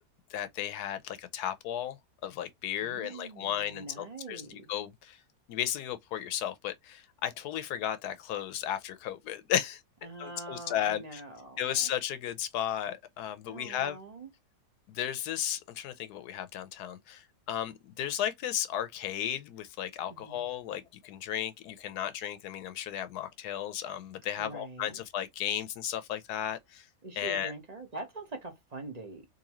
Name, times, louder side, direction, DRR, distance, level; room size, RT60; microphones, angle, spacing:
voice 1, 0.3-2.0 2.2-5.2 5.5-9.8 10.2-11.2 11.6-14.0 14.9-26.9 27.2-27.5, left 10 dB, 80° left, 1.1 m, -34 dB
voice 2, 2.8-4.7 10.0-11.9 13.5-14.3 20.1-20.5 24.4-25.0 27.0-29.3, right 3 dB, 30° right, 0.8 m, -44 dB
3.9 x 2.6 x 2.9 m
omnidirectional pair, 1.7 m